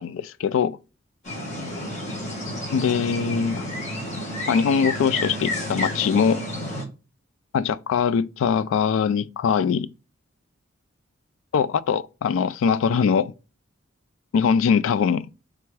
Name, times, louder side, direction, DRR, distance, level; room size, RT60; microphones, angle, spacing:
voice 1, 0.0-0.8 2.7-3.7 4.5-6.4 7.5-9.9 11.5-13.3 14.3-15.2, left 6 dB, 85° left, 0.3 m, -22 dB
sound 1, 1.2-6.8, left 1 dB, 40° left, 1.4 m, -31 dB
3.4 x 3.4 x 3.2 m
head